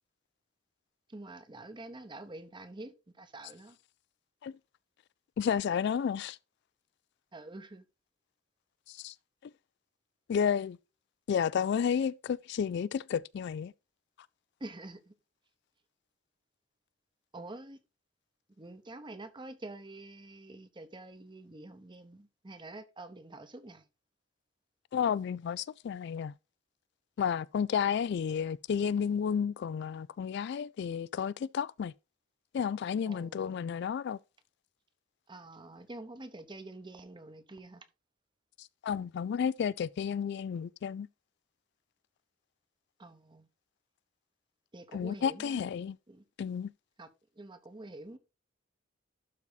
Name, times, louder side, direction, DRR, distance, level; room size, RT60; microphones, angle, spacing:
voice 1, 1.1-3.8 7.3-7.8 14.6-15.1 17.3-17.8 18.6-23.9 33.1-33.6 35.3-37.9 43.0-43.5 44.7-45.6 46.1-46.2 47.0-47.1 47.4-48.2, right 2 dB, 25° right, 0.9 m, -47 dB
voice 2, 5.4-6.4 8.9-9.1 10.3-10.8 11.3-13.7 24.9-26.3 27.2-31.9 32.5-34.2 38.6-41.1 44.9-46.0 46.4-46.7, left 7 dB, 60° left, 0.3 m, -31 dB
12.0 x 4.1 x 4.0 m
head